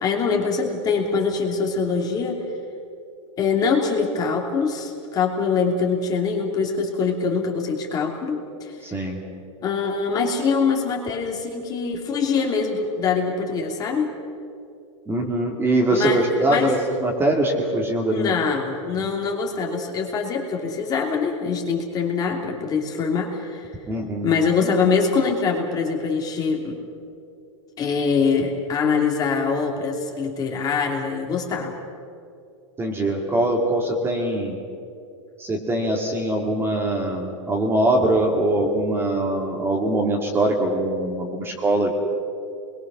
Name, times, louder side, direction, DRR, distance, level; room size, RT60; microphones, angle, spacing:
voice 1, 0.0-2.4 3.4-8.7 9.6-14.1 15.9-16.7 18.1-23.7 24.2-26.8 27.8-31.7, left 5 dB, 25° left, 1 dB, 2.9 m, -23 dB
voice 2, 8.8-9.2 15.1-18.3 23.9-24.3 32.8-34.6 35.4-42.0, right 1 dB, 15° right, 1 dB, 2.4 m, -22 dB
27.5 x 22.0 x 6.3 m, 2.5 s
supercardioid pair, 150°, 16 cm